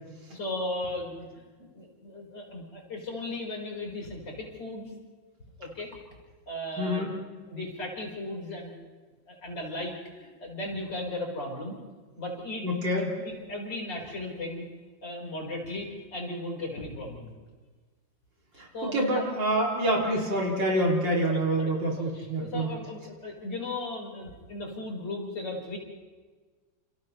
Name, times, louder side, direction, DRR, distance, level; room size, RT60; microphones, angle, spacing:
voice 1, 0.3-4.9 5.6-5.9 6.5-7.1 7.5-8.7 9.3-11.8 12.2-12.7 13.2-14.7 15.0-17.3 18.5-19.2 21.3-21.7 22.0-25.8, left 1 dB, 65° left, -1 dB, 5.5 m, -36 dB
voice 2, 6.8-7.1 12.6-13.2 18.6-22.7, right 1 dB, 70° right, -2 dB, 3.6 m, -27 dB
30.0 x 28.5 x 3.3 m, 1.4 s
omnidirectional pair, 2.1 m